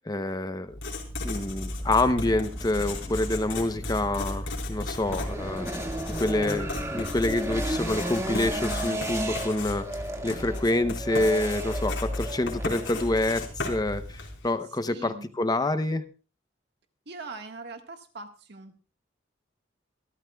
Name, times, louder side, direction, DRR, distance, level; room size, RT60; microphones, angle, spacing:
voice 1, 0.0-0.8 1.2-5.7 6.2-9.9 10.2-16.0, left 2 dB, 20° left, 10 dB, 0.8 m, -27 dB
Writing, 0.7-14.5, left 1 dB, 75° left, 4.2 m, -35 dB
sound 1, 0.9-8.6, equal, 5° left, 1.1 m, -44 dB
sound 2, 5.0-13.1, right 1 dB, 15° right, 1.9 m, -34 dB
voice 2, 14.9-15.3 17.0-18.8, right 3 dB, 60° right, 5 dB, 1.6 m, -41 dB
27.5 x 13.0 x 2.3 m, 0.36 s
head